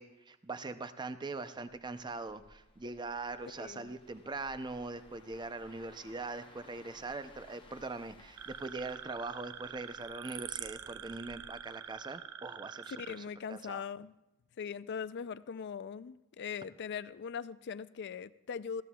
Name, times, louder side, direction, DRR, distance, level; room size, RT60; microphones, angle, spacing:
voice 1, 0.0-13.8, right 3 dB, 20° right, 11 dB, 0.5 m, -42 dB
sound 1, 1.7-12.6 13.0-13.3, left 2 dB, 20° left, 0.9 m, -60 dB
voice 2, 3.6-3.9 12.9-14.1 14.6-18.8, left 6 dB, 50° left, 16 dB, 0.4 m, -41 dB
sound 2, 8.4-13.2, right 9 dB, 80° right, 0.6 m, -45 dB
19.5 x 15.0 x 2.3 m, 0.91 s
head